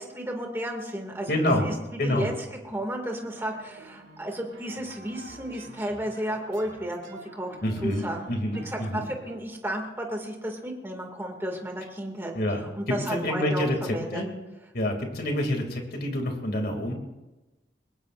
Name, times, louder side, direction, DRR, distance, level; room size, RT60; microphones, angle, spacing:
voice 1, 0.0-1.3 1.6-1.7 2.0-2.3 2.6-7.5 7.8-8.3 8.6-12.3 12.7-13.6 13.9-14.2, right 1 dB, 15° right, 1 dB, 2.2 m, -33 dB
voice 2, 1.3-1.6 2.0-2.3 7.6-9.0 12.3-12.6 13.1-14.3 14.7-16.9, left 1 dB, 55° left, 3 dB, 2.6 m, -27 dB
sound 1, 3.2-9.4, right 2 dB, 90° right, 2.8 m, -49 dB
22.5 x 19.5 x 2.6 m, 1.1 s
head